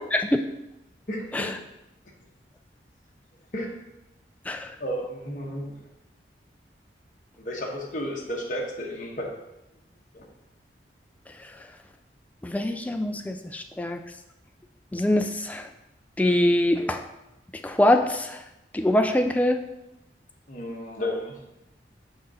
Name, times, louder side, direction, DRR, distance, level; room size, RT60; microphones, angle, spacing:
voice 1, 1.1-1.5 3.5-3.7 4.8-5.8 7.4-9.3 10.1-10.2 20.5-21.3, equal, 45° left, -1 dB, 1.2 m, -32 dB
voice 2, 12.4-14.0 14.9-15.7 16.2-17.0 17.6-18.4 18.7-19.6, left 1 dB, 10° left, 6 dB, 0.3 m, -23 dB
6.3 x 3.8 x 5.4 m, 0.92 s
head